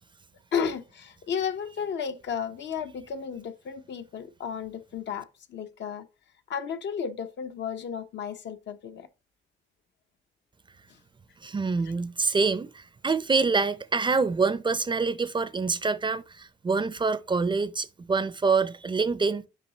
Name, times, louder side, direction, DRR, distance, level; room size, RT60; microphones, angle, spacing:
voice 1, 0.5-6.0 6.5-9.1, left 7 dB, 65° left, 0.9 m, -33 dB
voice 2, 11.4-19.4, right 4 dB, 25° right, 0.5 m, -26 dB
6.6 x 4.9 x 3.0 m
cardioid pair, 90°, 20 cm